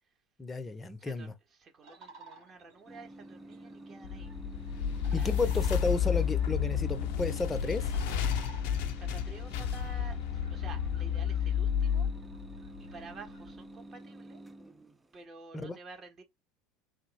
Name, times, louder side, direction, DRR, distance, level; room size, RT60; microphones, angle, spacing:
voice 1, 0.4-1.3 5.1-7.9 15.5-15.8, left 3 dB, 20° left, 0.7 m, -33 dB
voice 2, 1.0-4.3 5.1-5.5 8.5-12.1 12.8-14.4 15.1-16.2, right 3 dB, 35° right, 1.1 m, -51 dB
sound 1, 1.8-13.5, right 3 dB, 60° right, 1.6 m, -56 dB
sound 2, 2.9-15.2, right 1 dB, 15° right, 0.4 m, -49 dB
sound 3, 4.0-13.2, left 8 dB, 60° left, 0.5 m, -31 dB
3.4 x 2.5 x 3.2 m
hypercardioid pair, 75°, 0 cm